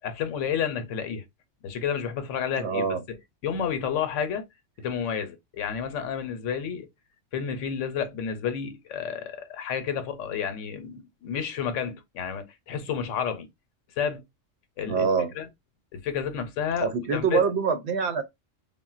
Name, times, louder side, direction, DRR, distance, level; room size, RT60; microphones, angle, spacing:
voice 1, 0.0-1.2 1.6-2.9 3.4-4.4 4.8-6.9 7.3-13.5 14.0-14.2 14.8-15.1 15.4-15.5 15.9-17.4, left 7 dB, 80° left, 1.0 m, -30 dB
voice 2, 2.6-3.0 14.9-15.3 16.8-18.2, right 5 dB, 65° right, 0.8 m, -25 dB
3.6 x 2.1 x 2.4 m
omnidirectional pair, 1.3 m